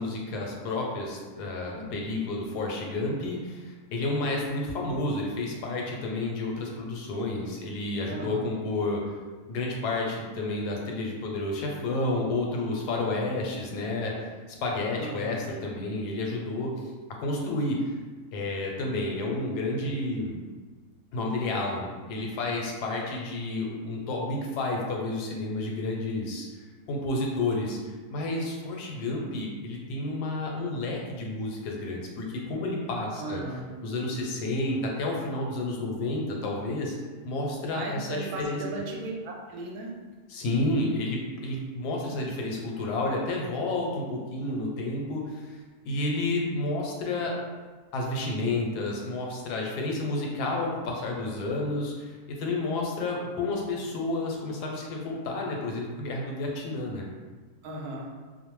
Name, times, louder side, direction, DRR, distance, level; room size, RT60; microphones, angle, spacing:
voice 1, 0.0-9.0 9.5-14.3 14.6-16.7 17.2-17.9 18.3-20.4 21.1-33.4 33.8-37.0 37.2-38.6 40.3-45.6 45.8-47.3 47.9-57.0, left 2 dB, 85° left, -1 dB, 1.1 m, -30 dB
voice 2, 8.1-8.6 14.9-15.5 33.2-33.7 37.7-39.9 57.6-58.1, right 2 dB, 75° right, -1 dB, 1.0 m, -36 dB
2.6 x 2.0 x 3.0 m, 1.4 s
omnidirectional pair, 1.7 m